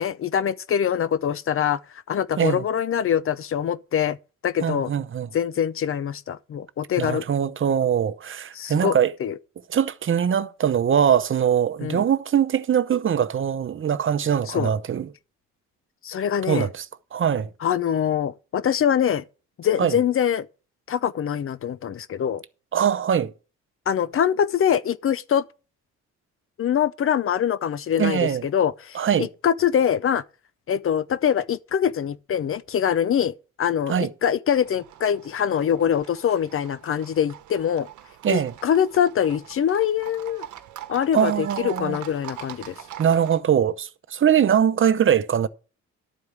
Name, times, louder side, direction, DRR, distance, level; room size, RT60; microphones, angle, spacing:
voice 1, 0.0-4.2 4.4-4.9 5.3-7.2 8.5-9.3 11.8-12.0 14.5-14.7 16.0-16.7 17.6-19.2 19.6-20.5 20.9-22.4 23.9-25.4 26.6-30.2 30.7-37.9 38.3-40.5 40.9-42.8, left 9 dB, 45° left, 0.6 m, -24 dB
voice 2, 4.6-5.3 7.0-9.1 9.7-15.1 16.5-16.8 17.1-17.5 19.8-20.0 22.7-23.3 28.0-28.4 28.9-29.3 33.9-34.1 38.2-38.5 41.1-42.0 43.0-45.5, right 8 dB, 45° right, 0.8 m, -22 dB
Livestock farm animals working animals, 34.5-43.4, right 12 dB, 75° right, 1.1 m, -43 dB
12.0 x 4.7 x 7.1 m
cardioid pair, 90°, 30 cm